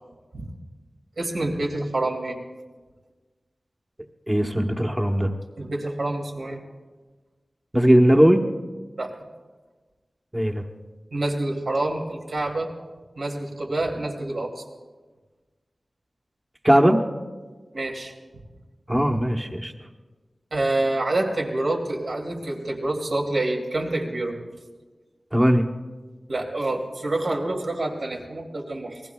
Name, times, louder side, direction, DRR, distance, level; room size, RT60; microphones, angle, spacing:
voice 1, 1.2-2.4 5.6-6.6 9.0-9.1 11.1-12.7 13.2-14.6 17.7-18.1 20.5-24.4 26.3-29.0, right 2 dB, 75° right, 1 dB, 2.6 m, -27 dB
voice 2, 4.3-5.3 7.7-8.4 10.3-10.6 16.6-17.0 18.9-19.7 25.3-25.6, equal, 15° right, 2 dB, 1.1 m, -18 dB
29.0 x 20.5 x 2.3 m, 1.3 s
wide cardioid pair, 85°, 0 cm